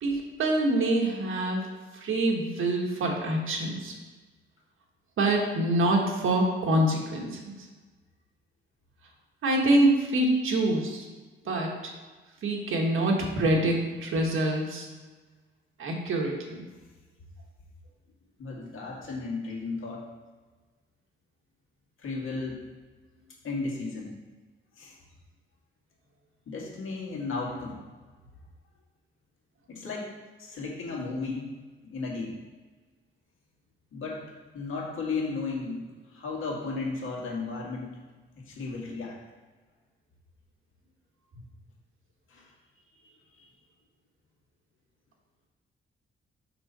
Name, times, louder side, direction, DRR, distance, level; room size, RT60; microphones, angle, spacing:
voice 1, 0.0-1.6 2.0-3.9 5.2-7.6 9.4-11.0 11.5-11.9 12.4-14.9 15.8-16.6, right 1 dB, 70° right, 0 dB, 1.5 m, -25 dB
voice 2, 18.4-20.0 22.0-22.6 23.4-24.1 24.8-25.0 26.5-27.8 29.7-30.1 30.4-31.5 31.9-32.4 33.9-34.2 34.5-37.9 38.3-39.2 42.3-42.5 43.1-43.5, left 3 dB, 70° left, -2 dB, 2.1 m, -34 dB
6.7 x 6.3 x 4.2 m, 1.3 s
cardioid pair, 125°, 21 cm